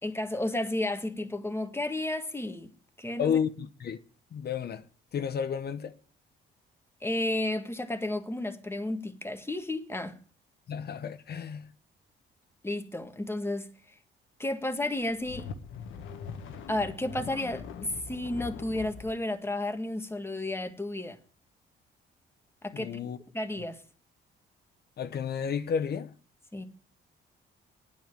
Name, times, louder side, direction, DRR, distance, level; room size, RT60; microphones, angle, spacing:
voice 1, 0.0-2.7 3.0-3.4 7.0-10.2 12.6-13.7 14.4-15.5 16.7-21.2 22.6-23.1 23.3-23.8 26.5-26.6, left 1 dB, 10° left, 1.7 m, -32 dB
voice 2, 3.2-4.0 4.3-4.8 5.1-5.9 10.7-11.7 22.7-23.2 25.0-26.1, left 7 dB, 55° left, 0.9 m, -31 dB
sound 1, 14.9-19.2, left 6 dB, 80° left, 1.4 m, -42 dB
9.4 x 7.3 x 8.5 m
cardioid pair, 90°, 20 cm